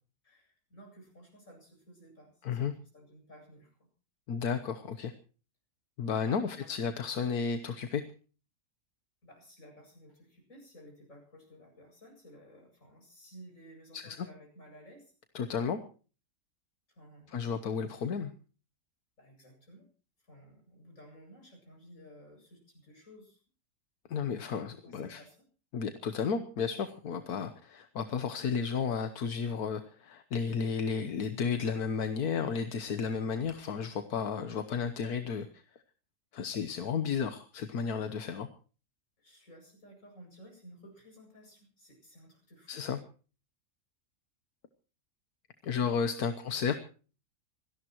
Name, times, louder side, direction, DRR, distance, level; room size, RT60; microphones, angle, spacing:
voice 1, 0.2-3.9 6.4-6.7 9.2-15.1 16.9-17.4 19.2-19.9 20.2-23.4 24.8-25.4 39.2-42.8 45.6-45.9 46.5-46.6, equal, 60° left, 3 dB, 8.3 m, -55 dB
voice 2, 2.4-2.7 4.3-5.1 6.0-8.0 13.9-14.3 15.4-15.8 17.3-18.3 24.1-25.2 25.7-35.6 36.3-38.5 42.7-43.0 45.6-46.8, left 6 dB, 85° left, 9 dB, 1.6 m, -33 dB
26.5 x 17.5 x 3.0 m, 0.38 s
omnidirectional pair, 1.6 m